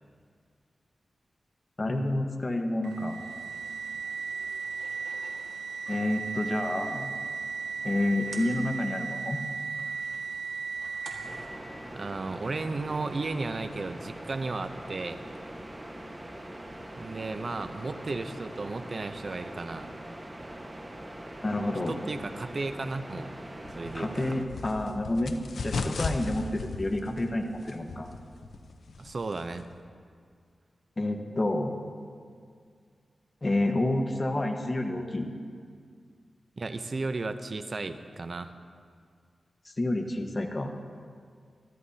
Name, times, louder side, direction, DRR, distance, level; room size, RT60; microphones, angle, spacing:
voice 1, 1.8-3.2 5.9-7.1 7.8-9.4 21.4-21.9 23.9-25.4 25.6-28.1 31.0-31.8 33.4-35.3 39.8-40.7, left 1 dB, 35° left, 4 dB, 1.4 m, -29 dB
sound 1, 2.8-11.4, right 5 dB, 75° right, 1.8 m, -36 dB
sound 2, 11.2-24.4, right 1 dB, 20° right, 1.5 m, -42 dB
voice 2, 11.9-15.3 17.0-19.9 21.9-23.3 23.8-24.4 29.0-29.7 36.6-38.5, right 3 dB, 50° right, 9 dB, 0.7 m, -34 dB
sound 3, 23.6-29.8, left 3 dB, 75° left, 0.7 m, -37 dB
24.0 x 13.5 x 2.9 m, 2.1 s
cardioid pair, 65°, 0 cm